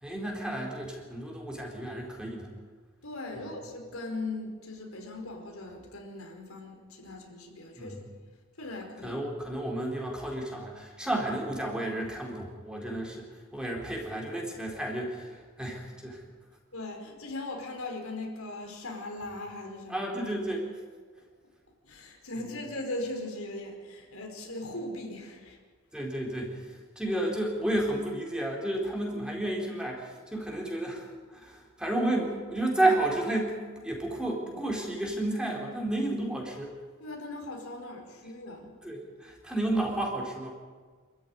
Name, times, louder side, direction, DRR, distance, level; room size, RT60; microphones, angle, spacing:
voice 1, 0.0-2.5 3.3-3.6 7.8-8.0 9.0-16.2 19.9-20.7 25.9-36.7 38.8-40.5, right 1 dB, 5° right, -1 dB, 4.3 m, -32 dB
voice 2, 3.0-7.9 8.5-9.2 16.7-20.1 21.8-25.6 37.0-38.7, left 2 dB, 80° left, 2 dB, 4.8 m, -39 dB
26.5 x 14.0 x 9.6 m, 1.5 s
head